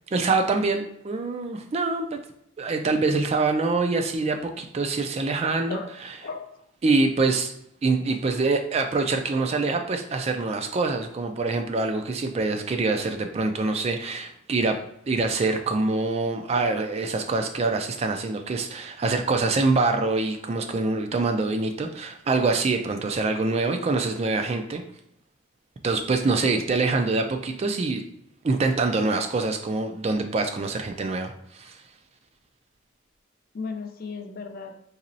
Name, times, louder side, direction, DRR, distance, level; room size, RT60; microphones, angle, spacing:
voice 1, 0.1-2.2 2.6-5.8 6.8-7.5 7.8-14.8 15.1-24.8 25.8-28.0 28.4-31.8, right 3 dB, 30° right, 5 dB, 0.3 m, -25 dB
voice 2, 6.2-6.6 8.3-8.4 23.6-23.7 26.5-26.6 33.5-34.8, left 4 dB, 45° left, 5 dB, 0.4 m, -35 dB
4.1 x 2.9 x 2.6 m, 0.73 s
head